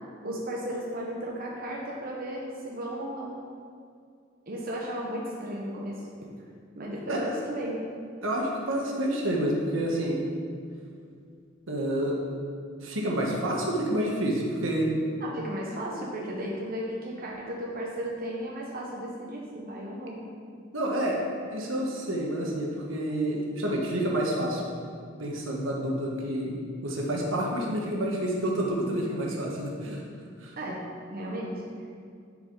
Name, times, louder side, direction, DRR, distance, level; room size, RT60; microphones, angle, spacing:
voice 1, 0.2-3.3 4.5-6.0 6.7-7.8 15.2-20.3 30.6-31.5, right 1 dB, 50° right, -3 dB, 1.0 m, -35 dB
voice 2, 8.2-10.2 11.7-12.2 12.8-14.9 20.7-21.2 21.5-24.6 25.2-30.0 30.4-30.5, right 1 dB, 80° right, -1 dB, 1.4 m, -29 dB
10.0 x 5.0 x 4.0 m, 2.3 s
head